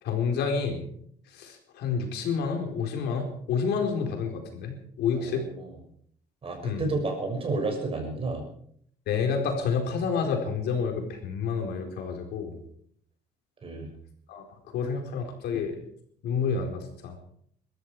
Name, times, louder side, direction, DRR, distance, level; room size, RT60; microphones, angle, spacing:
voice 1, 0.0-0.9 1.3-5.5 6.6-6.9 9.1-12.6 14.3-15.8 16.2-17.2, left 5 dB, 75° left, 3 dB, 4.4 m, -29 dB
voice 2, 5.1-5.7 6.4-8.4 13.6-13.9, right 3 dB, 35° right, 2 dB, 6.7 m, -31 dB
21.5 x 13.5 x 4.9 m, 0.64 s
cardioid pair, 110°, 17 cm